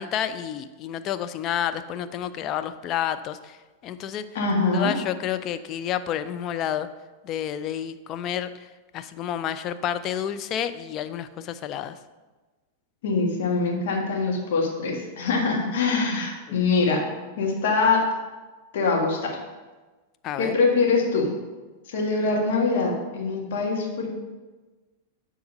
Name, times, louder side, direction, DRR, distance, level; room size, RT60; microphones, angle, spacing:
voice 1, 0.0-3.6 3.8-4.3 4.7-6.9 7.2-8.5 8.9-12.0 16.5-16.6 20.2-20.5, left 10 dB, 35° left, 11 dB, 0.4 m, -30 dB
voice 2, 4.4-4.9 13.0-17.0 17.4-18.0 18.7-19.3 20.4-21.3 21.9-24.1, left 4 dB, 55° left, -1 dB, 1.7 m, -23 dB
9.4 x 3.8 x 5.2 m, 1.3 s
figure-of-eight pair, 95°, 0 cm